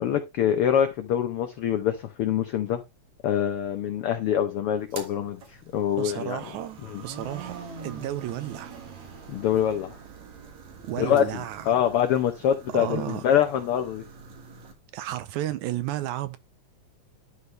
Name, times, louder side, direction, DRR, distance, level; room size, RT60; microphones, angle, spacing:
voice 1, 0.0-2.8 3.2-6.4 6.9-7.0 9.3-9.9 11.0-14.0, left 9 dB, 85° left, 1.2 m, -25 dB
sound 1, 4.8-14.7, right 5 dB, 65° right, 2.9 m, -44 dB
voice 2, 5.9-8.8 10.8-11.7 12.7-13.2 14.9-16.4, right 13 dB, 80° right, 2.0 m, -33 dB
12.0 x 4.8 x 3.1 m
omnidirectional pair, 3.5 m